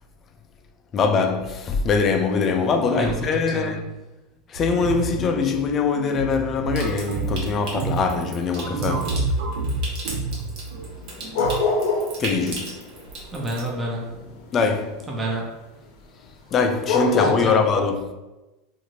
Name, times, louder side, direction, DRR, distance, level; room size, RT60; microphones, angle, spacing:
voice 1, 0.9-3.9 4.5-9.4 12.2-12.9 14.5-15.1 16.5-18.1, left 5 dB, 30° left, 0.3 m, -23 dB
sound 1, 4.6-11.6, right 3 dB, 75° right, 0.4 m, -29 dB
Water tap faucet / Sink (filling or washing) / Trickle dribble, 6.7-13.7, right 2 dB, 50° right, 0.8 m, -38 dB
sound 2, 10.9-12.2 12.5-14.9 16.5-16.6 16.9-17.3, left 3 dB, 65° left, 0.6 m, -24 dB
voice 2, 13.3-14.1 15.1-15.5 17.2-17.6, right 2 dB, 15° right, 0.6 m, -28 dB
2.6 x 2.5 x 3.0 m
supercardioid pair, 145°, 0 cm